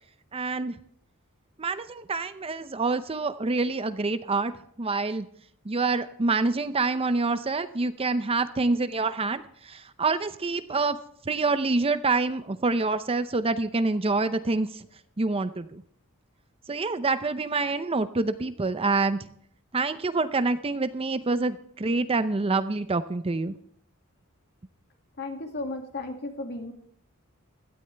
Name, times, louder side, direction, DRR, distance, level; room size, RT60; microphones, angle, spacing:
voice 1, 0.3-0.8 1.6-4.5 4.8-5.3 5.7-11.0 11.3-14.8 15.2-15.8 16.7-19.2 19.7-23.5, right 3 dB, 25° right, 11 dB, 0.6 m, -26 dB
voice 2, 25.2-26.7, left 2 dB, 50° left, 4 dB, 2.3 m, -34 dB
17.0 x 12.5 x 3.4 m, 0.64 s
head